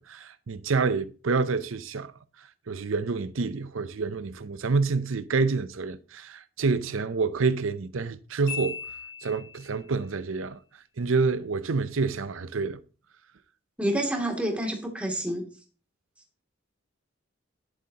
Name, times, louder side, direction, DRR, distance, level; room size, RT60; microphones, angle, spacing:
voice 1, 0.1-2.1 2.4-8.8 9.2-10.6 11.0-12.8, right 4 dB, 80° right, 0.6 m, -28 dB
Marimba xylophone, 8.5-9.9, left 7 dB, 55° left, 5.6 m, -37 dB
voice 2, 13.8-15.5, right 1 dB, 5° right, 2.5 m, -28 dB
11.5 x 11.0 x 2.9 m
head